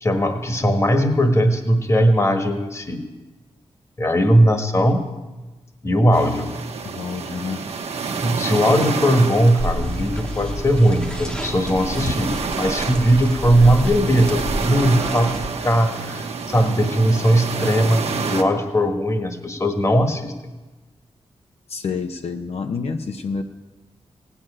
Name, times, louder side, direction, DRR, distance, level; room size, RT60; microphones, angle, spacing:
voice 1, 0.0-3.0 4.0-5.1 5.8-6.5 8.2-20.3, equal, 25° left, 6 dB, 1.4 m, -19 dB
sound 1, 6.1-18.4, right 5 dB, 80° right, 1.2 m, -29 dB
voice 2, 6.8-7.6 21.7-23.4, left 5 dB, 75° left, 5 dB, 0.8 m, -28 dB
sound 2, 9.6-15.5, equal, 10° left, 1.1 m, -30 dB
17.0 x 7.0 x 9.8 m, 1.2 s
wide cardioid pair, 135°, 11 cm